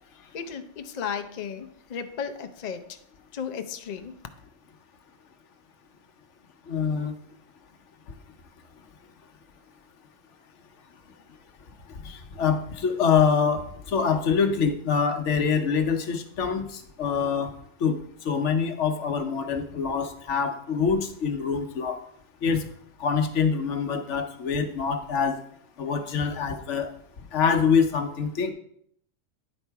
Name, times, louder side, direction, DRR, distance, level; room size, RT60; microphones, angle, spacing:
voice 1, 0.3-3.0 3.3-4.1, left 7 dB, 50° left, 7 dB, 0.5 m, -34 dB
voice 2, 6.7-7.1 12.0-13.6 13.9-16.6 17.0-17.5 17.8-18.0 18.2-22.0 22.4-22.6 23.0-25.3 25.8-26.9 27.3-28.5, left 6 dB, 65° left, 6 dB, 1.1 m, -25 dB
9.7 x 4.1 x 4.6 m, 0.70 s
omnidirectional pair, 1.3 m